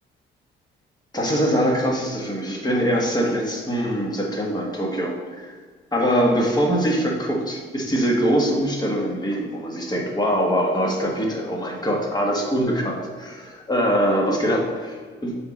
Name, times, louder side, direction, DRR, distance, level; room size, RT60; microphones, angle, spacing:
voice 1, 1.1-5.6 5.9-15.4, equal, 20° left, -1 dB, 1.4 m, -23 dB
7.9 x 3.6 x 4.1 m, 1.5 s
cardioid pair, 90°, 20 cm